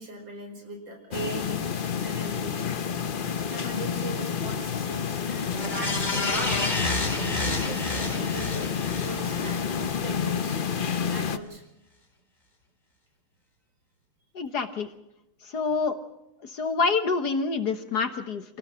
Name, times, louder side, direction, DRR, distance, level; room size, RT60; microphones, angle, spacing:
voice 1, 0.0-1.6 2.0-2.6 3.5-6.7 7.2-8.7 9.0-9.6 10.0-10.6 11.1-11.6, right 2 dB, 65° right, 4 dB, 5.4 m, -39 dB
sound 1, 1.1-11.4, left 7 dB, 85° left, 0.4 m, -29 dB
sound 2, 5.5-10.1 10.5-10.6, left 2 dB, 20° left, 2.5 m, -30 dB
voice 2, 14.3-14.9 15.5-16.0 16.5-18.4, left 4 dB, 55° left, 9 dB, 1.6 m, -26 dB
27.5 x 18.0 x 6.3 m, 0.87 s
omnidirectional pair, 2.3 m